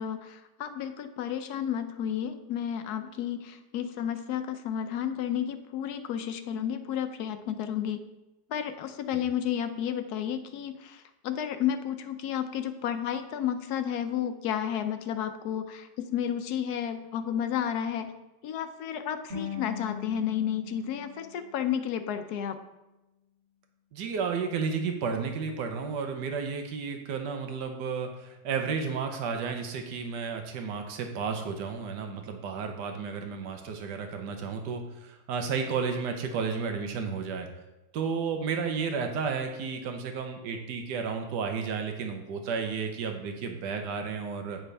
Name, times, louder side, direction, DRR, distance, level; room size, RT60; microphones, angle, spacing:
voice 1, 0.0-8.0 8.5-18.1 18.4-22.6, left 9 dB, 75° left, 9 dB, 1.1 m, -32 dB
sound 1, 19.3-22.4, left 7 dB, 45° right, 1.7 m, -41 dB
voice 2, 23.9-37.5 37.9-44.6, right 5 dB, 90° right, 5 dB, 1.4 m, -32 dB
9.0 x 6.0 x 3.3 m, 1.0 s
omnidirectional pair, 1.8 m